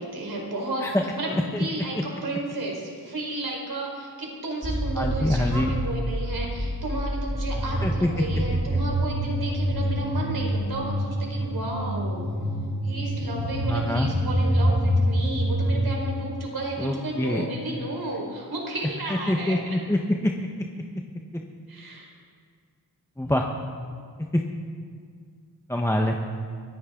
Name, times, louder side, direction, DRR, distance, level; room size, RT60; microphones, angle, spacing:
voice 1, 0.0-0.9 1.2-12.3 12.8-19.8 21.7-22.1, right 1 dB, 60° right, -1 dB, 4.8 m, -32 dB
voice 2, 0.8-1.6 4.9-5.7 7.8-8.4 13.7-14.1 16.8-17.4 19.1-20.3 21.3-21.4 23.2-23.5 24.2-24.4 25.7-26.1, left 1 dB, 5° left, 1 dB, 1.2 m, -25 dB
sound 1, 4.6-15.7, equal, 25° right, 4.1 m, -26 dB
24.0 x 14.5 x 3.9 m, 2.1 s
cardioid pair, 65°, 41 cm